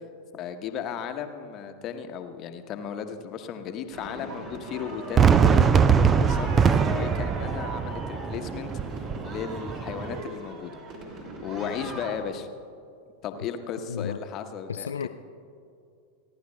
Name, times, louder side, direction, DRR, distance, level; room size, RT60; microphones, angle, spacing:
voice 1, 0.3-8.7 9.2-10.7 11.4-12.5 13.2-14.9, left 7 dB, 35° left, 7 dB, 1.0 m, -35 dB
sound 1, 3.9-12.2, right 2 dB, 40° right, 2.5 m, -39 dB
Fireworks, 5.2-10.2, right 6 dB, 20° right, 0.4 m, -22 dB
voice 2, 14.7-15.1, left 7 dB, 70° left, 6 dB, 0.4 m, -32 dB
30.0 x 11.0 x 2.2 m, 2.4 s
figure-of-eight pair, 90°, 0 cm